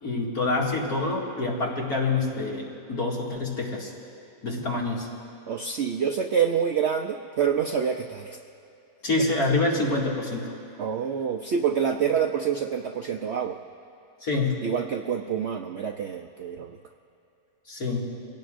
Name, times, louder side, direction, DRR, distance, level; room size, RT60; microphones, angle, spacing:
voice 1, 0.0-3.9 4.4-5.1 9.0-10.5 14.2-14.6 17.7-18.1, left 3 dB, 65° left, -4 dB, 2.9 m, -26 dB
voice 2, 5.5-8.4 10.8-13.6 14.6-16.8, right 7 dB, 65° right, 4 dB, 0.6 m, -27 dB
25.0 x 17.5 x 2.6 m, 2.9 s
omnidirectional pair, 1.7 m